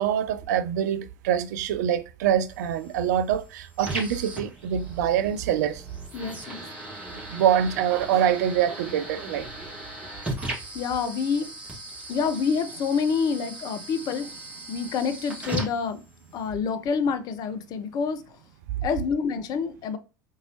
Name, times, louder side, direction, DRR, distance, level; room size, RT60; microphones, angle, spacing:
voice 1, 0.0-5.8 7.3-9.5, right 9 dB, 55° right, 0.4 m, -25 dB
sound 1, 2.5-16.5, right 2 dB, 10° right, 2.0 m, -38 dB
voice 2, 6.1-6.6 10.7-11.5 12.1-14.4 14.7-16.0 16.3-18.4 18.8-20.0, left 6 dB, 40° left, 0.6 m, -27 dB
3.9 x 2.7 x 3.1 m
figure-of-eight pair, 75°, 11 cm